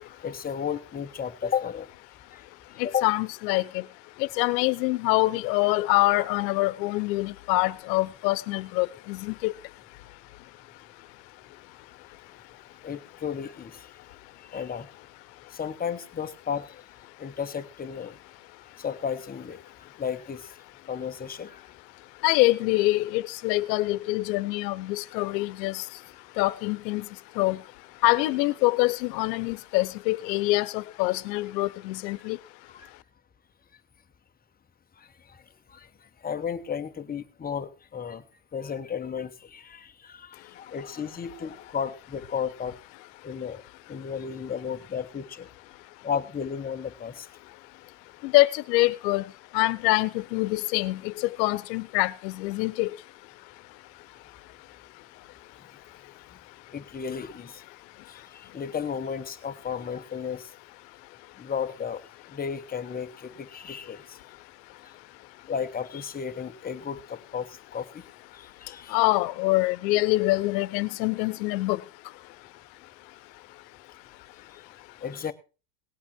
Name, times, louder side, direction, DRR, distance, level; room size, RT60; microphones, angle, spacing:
voice 1, 0.0-1.9 2.3-2.4 2.8-3.1 12.8-13.9 14.4-14.9 15.5-16.8 17.2-18.2 18.8-19.6 20.0-20.6 20.9-21.6 32.7-32.9 35.0-35.4 35.7-35.9 36.2-38.2 38.5-42.8 43.2-43.6 43.9-45.5 46.0-47.3 56.7-57.6 58.1-60.5 61.4-62.0 62.3-64.2 64.8-64.9 65.5-68.0 68.3-69.0 75.0-75.3, left 7 dB, 20° left, 1.1 m, -33 dB
voice 2, 2.8-3.8 4.2-9.5 22.2-25.8 26.4-27.0 27.4-27.6 28.0-32.4 48.2-49.2 49.5-51.1 51.4-52.9 68.9-71.8, left 20 dB, 80° left, 1.0 m, -25 dB
18.5 x 8.3 x 4.5 m
supercardioid pair, 130°, 50 cm